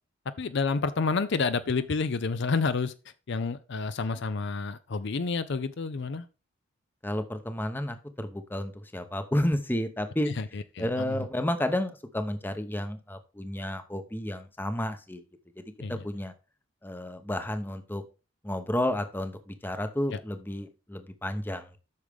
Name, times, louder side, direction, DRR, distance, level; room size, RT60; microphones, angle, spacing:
voice 1, 0.4-2.9 3.3-6.3 10.3-11.3 15.8-16.0 20.1-20.2, left 4 dB, 55° left, 12 dB, 0.5 m, -29 dB
voice 2, 7.0-15.2 15.6-15.7 15.9-16.3 16.8-18.0 18.4-21.7, left 1 dB, 10° left, 8 dB, 0.8 m, -31 dB
8.4 x 6.4 x 3.5 m, 0.31 s
head